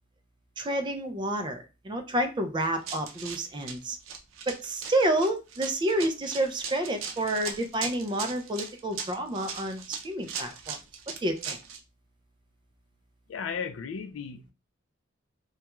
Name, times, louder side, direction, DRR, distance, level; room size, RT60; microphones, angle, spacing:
voice 1, 0.6-4.0 4.5-10.8 11.2-11.6, right 1 dB, 25° right, 0.3 m, -29 dB
Run, 2.6-11.8, right 6 dB, 85° right, 0.5 m, -39 dB
voice 2, 13.3-14.5, left 6 dB, 70° left, 0.3 m, -35 dB
2.3 x 2.2 x 2.9 m
head